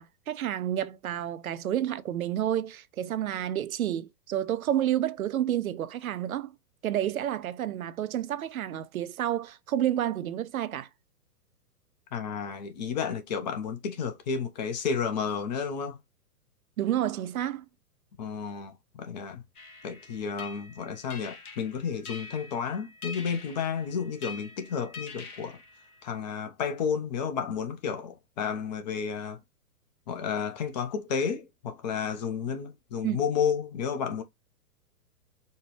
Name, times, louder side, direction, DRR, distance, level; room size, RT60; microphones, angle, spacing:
voice 1, 0.0-6.5 6.8-10.9 16.8-17.7 33.0-33.2, right 11 dB, 65° right, 0.5 m, -30 dB
voice 2, 12.1-16.0 18.2-19.4 19.8-25.6 26.0-29.4 30.1-34.2, left 6 dB, 30° left, 0.5 m, -31 dB
sound 1, 19.6-26.2, left 4 dB, 70° left, 1.2 m, -45 dB
4.3 x 2.2 x 3.1 m
figure-of-eight pair, 115°, 46 cm